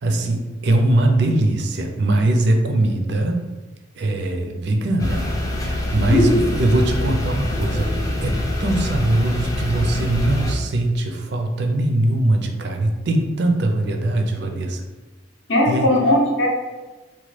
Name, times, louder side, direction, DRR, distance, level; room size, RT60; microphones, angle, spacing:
voice 1, 0.0-3.4 4.0-5.2 5.6-7.9 8.2-14.8 15.7-15.9, right 1 dB, 60° right, 4 dB, 0.4 m, -21 dB
sound 1, 5.0-10.6, left 1 dB, 15° left, 0.3 m, -24 dB
voice 2, 6.1-6.4 15.5-16.5, left 1 dB, 65° left, -1 dB, 0.6 m, -17 dB
2.9 x 2.2 x 3.1 m, 1.3 s
head